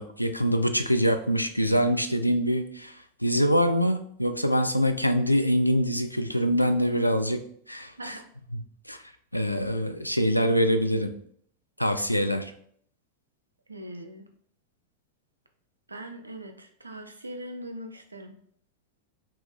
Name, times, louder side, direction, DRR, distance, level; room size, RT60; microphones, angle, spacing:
voice 1, 0.0-2.9 3.2-7.4 7.7-8.2 8.5-8.6 8.9-9.0 9.3-11.1 11.8-12.5, equal, 90° left, 8 dB, 0.3 m, -24 dB
voice 2, 13.7-14.3 15.9-18.4, right 1 dB, 80° right, 5 dB, 0.5 m, -41 dB
3.2 x 3.0 x 3.5 m, 0.63 s
figure-of-eight pair, 90°, 0 cm